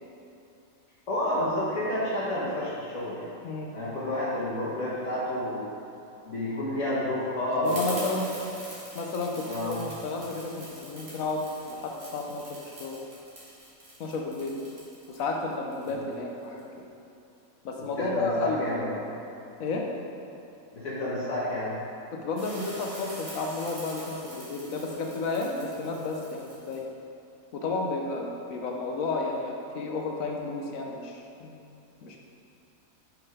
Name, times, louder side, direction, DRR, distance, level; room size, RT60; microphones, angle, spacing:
voice 1, 1.1-3.3 3.7-5.6 6.2-8.3 9.5-9.8 15.9-16.1 17.8-19.0 20.7-21.8, left 1 dB, 60° left, -9 dB, 1.6 m, -30 dB
voice 2, 3.4-3.8 7.5-8.3 8.9-13.0 14.0-14.7 15.1-16.6 17.6-18.9 19.6-19.9 22.1-26.8 27.5-31.6 32.0-32.2, left 3 dB, 75° left, 1 dB, 1.2 m, -32 dB
sound 1, 7.6-16.6 22.4-26.8, right 1 dB, 50° right, 2.0 m, -44 dB
6.0 x 5.0 x 4.8 m, 2.8 s
omnidirectional pair, 1.5 m